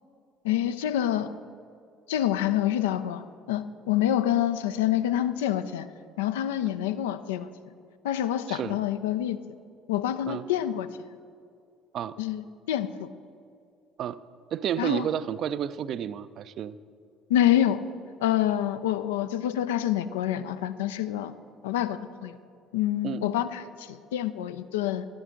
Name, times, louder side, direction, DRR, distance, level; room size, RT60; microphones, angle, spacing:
voice 1, 0.4-1.3 2.1-5.9 6.2-7.5 8.0-9.4 9.9-10.9 12.2-13.1 14.8-15.1 17.3-17.8 18.2-21.3 21.6-22.4 22.7-25.1, left 11 dB, 70° left, 12 dB, 0.3 m, -27 dB
voice 2, 8.5-8.8 10.3-10.4 11.9-12.2 14.0-14.2 14.5-16.8 23.0-23.2, right 9 dB, 45° right, 15 dB, 0.3 m, -31 dB
12.5 x 11.5 x 3.7 m, 2.3 s
figure-of-eight pair, 55°, 0 cm